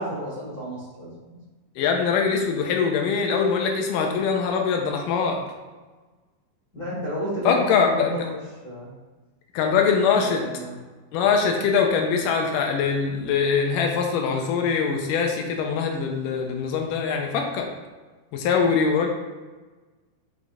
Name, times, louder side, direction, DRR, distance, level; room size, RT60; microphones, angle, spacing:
voice 1, 0.0-1.4 6.7-8.4 8.6-8.9 10.1-10.8, equal, 55° left, -8 dB, 1.0 m, -32 dB
voice 2, 1.8-5.4 7.4-8.1 9.5-10.4 11.1-17.7 18.3-19.1, left 6 dB, 85° left, 2 dB, 1.9 m, -22 dB
10.0 x 4.0 x 2.4 m, 1.3 s
omnidirectional pair, 4.6 m